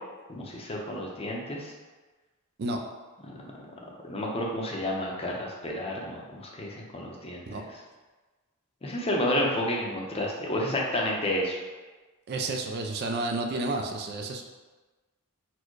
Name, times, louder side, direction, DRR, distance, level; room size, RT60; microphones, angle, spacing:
voice 1, 0.3-1.7 3.2-3.4 4.0-7.7 8.8-11.6, left 1 dB, 30° left, -1 dB, 0.7 m, -30 dB
voice 2, 12.3-14.4, right 2 dB, 50° right, 3 dB, 0.4 m, -31 dB
4.3 x 2.2 x 4.6 m, 1.3 s
head